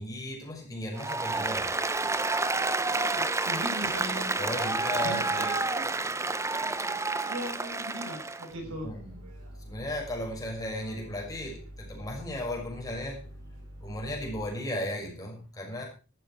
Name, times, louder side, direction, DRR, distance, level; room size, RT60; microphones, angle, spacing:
voice 1, 0.0-1.8 4.4-5.5 8.6-9.1 9.6-13.3 13.8-15.8, left 1 dB, 15° left, 0 dB, 6.1 m, -36 dB
Applause, 1.0-8.5, right 3 dB, 15° right, 0.8 m, -29 dB
voice 2, 2.9-4.7 5.0-6.0 7.2-8.9, equal, 60° right, 3 dB, 6.9 m, -39 dB
sound 1, 8.5-14.4, equal, 85° right, 6.4 m, -46 dB
14.5 x 12.5 x 4.7 m, 0.33 s
head